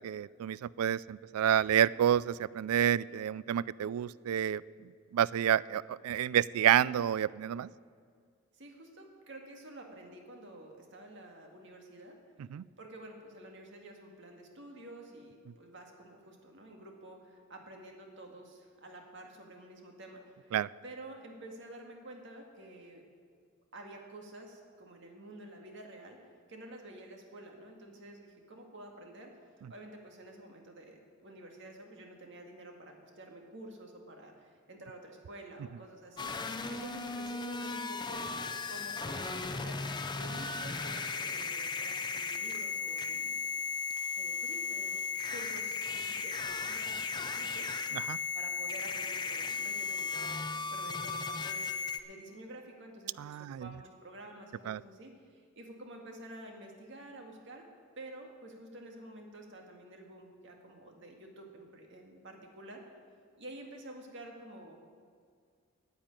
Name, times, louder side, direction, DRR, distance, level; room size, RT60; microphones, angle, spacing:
voice 1, 0.0-4.6 5.1-7.7 12.5-12.6 20.5-20.7 47.9-48.2 53.2-53.7 54.7-54.8, right 10 dB, 85° right, 19 dB, 0.3 m, -29 dB
voice 2, 8.6-12.1 12.8-23.0 23.7-26.2 26.5-29.3 29.7-36.4 36.7-43.4 44.2-45.0 45.3-48.0 48.3-51.7 52.1-57.6 58.0-63.0 63.4-64.8, right 1 dB, 55° right, 2 dB, 1.9 m, -50 dB
sound 1, 36.2-52.0, left 4 dB, 20° left, 0.5 m, -36 dB
9.7 x 9.2 x 9.0 m, 2.1 s
head